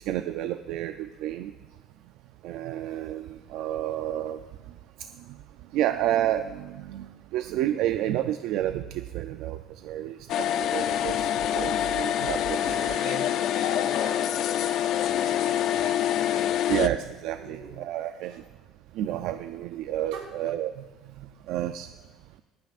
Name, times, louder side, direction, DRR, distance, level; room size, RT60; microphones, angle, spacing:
voice 1, 0.1-1.5 2.4-4.4 5.7-12.9 16.7-18.4 18.9-20.8 21.2-21.9, right 12 dB, 60° right, 9 dB, 0.4 m, -30 dB
sound 1, 10.3-16.9, left 11 dB, 45° left, 0.4 m, -26 dB
voice 2, 12.5-16.6 17.4-18.4 20.1-20.3, right 4 dB, 85° right, 0 dB, 3.4 m, -44 dB
26.0 x 9.3 x 2.5 m, 1.3 s
cardioid pair, 180°, 0 cm